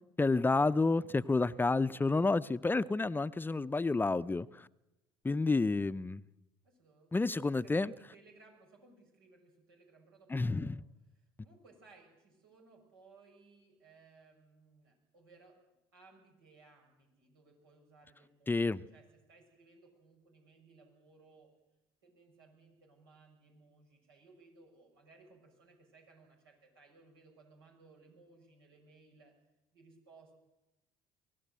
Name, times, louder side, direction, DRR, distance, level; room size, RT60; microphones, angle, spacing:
voice 1, 0.2-4.7 5.2-6.2 7.1-7.9 10.3-10.8 18.5-18.8, left 3 dB, 15° left, 0.7 m, -30 dB
voice 2, 6.6-7.2 7.6-10.9 11.4-15.6 15.9-21.5 22.0-29.3 29.7-30.3, right 3 dB, 85° right, 6.6 m, -62 dB
24.0 x 17.0 x 8.0 m
hypercardioid pair, 60°, 12 cm